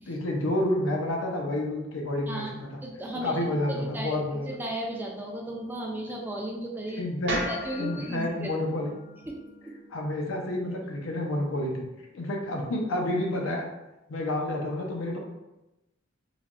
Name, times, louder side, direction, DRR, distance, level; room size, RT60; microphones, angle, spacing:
voice 1, 0.1-2.8 3.1-4.5 6.9-7.4 7.8-9.0 9.9-11.9 12.1-13.6 14.1-15.2, left 1 dB, 80° left, 1 dB, 0.6 m, -29 dB
voice 2, 2.8-8.6 9.3-9.7, right 1 dB, 10° right, -1 dB, 0.3 m, -35 dB
sound 1, 7.3-11.4, equal, 60° right, 0.7 m, -39 dB
3.2 x 2.2 x 2.4 m, 0.99 s
head